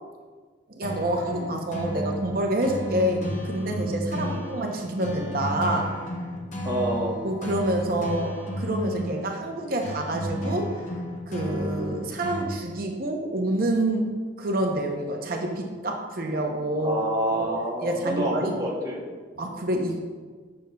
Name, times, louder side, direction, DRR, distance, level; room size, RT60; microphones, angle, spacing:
voice 1, 0.7-5.9 7.2-10.7 11.3-14.1 14.4-17.0 17.3-17.5 17.8-18.5 19.4-20.0, right 1 dB, 50° right, 2 dB, 0.7 m, -27 dB
sound 1, 0.8-12.4, equal, 40° left, 0.8 m, -33 dB
voice 2, 4.2-4.5 6.6-7.2 16.8-19.0, right 1 dB, 20° right, -3 dB, 0.9 m, -27 dB
6.9 x 6.4 x 2.3 m, 1.5 s
head